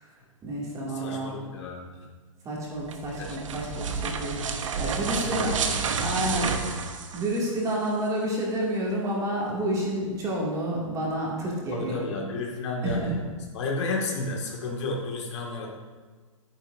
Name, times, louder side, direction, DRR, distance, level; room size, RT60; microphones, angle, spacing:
voice 1, 0.4-1.3 2.4-4.4 4.8-5.6 6.0-6.5 7.1-12.0 12.8-13.1, right 1 dB, 20° right, -4 dB, 2.5 m, -29 dB
voice 2, 0.9-1.9 3.2-4.1 4.9-5.9 6.1-6.8 11.7-13.2 13.5-15.7, left 3 dB, 55° left, 0 dB, 2.0 m, -33 dB
sound 1, 2.8-7.7, right 5 dB, 65° right, 1.0 m, -30 dB
10.5 x 9.9 x 2.7 m, 1.4 s
hypercardioid pair, 130°, 17 cm